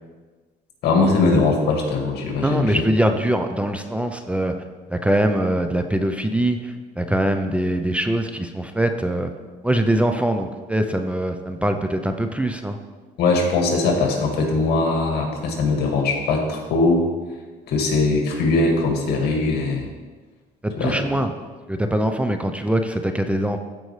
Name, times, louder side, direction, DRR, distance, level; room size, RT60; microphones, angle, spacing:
voice 1, 0.8-2.8 13.2-17.0 17.7-19.8 20.7-21.0, left 3 dB, 75° left, 1 dB, 1.9 m, -20 dB
voice 2, 2.4-4.5 4.9-9.3 9.6-12.8 20.6-21.3 21.7-23.6, right 1 dB, 5° right, 6 dB, 0.5 m, -22 dB
14.5 x 5.3 x 3.2 m, 1.4 s
cardioid pair, 110°, 17 cm